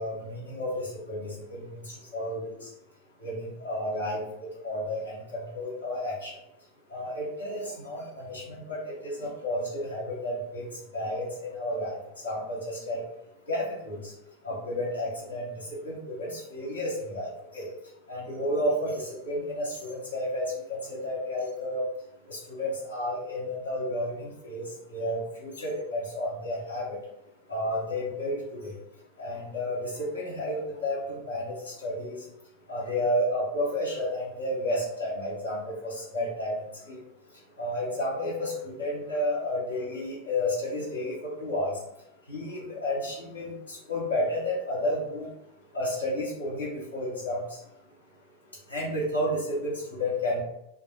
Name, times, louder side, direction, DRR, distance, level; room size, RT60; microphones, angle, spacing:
voice 1, 0.0-2.7 3.2-6.3 6.9-10.7 10.9-12.0 12.2-13.0 13.5-14.1 14.4-17.7 18.1-21.8 22.3-24.6 24.9-26.8 27.5-28.7 29.2-32.2 32.7-37.0 37.6-41.7 42.3-45.3 45.7-47.6 48.7-50.4, left 1 dB, 70° left, -6 dB, 1.1 m, -31 dB
2.4 x 2.2 x 3.0 m, 0.83 s
figure-of-eight pair, 90°, 0 cm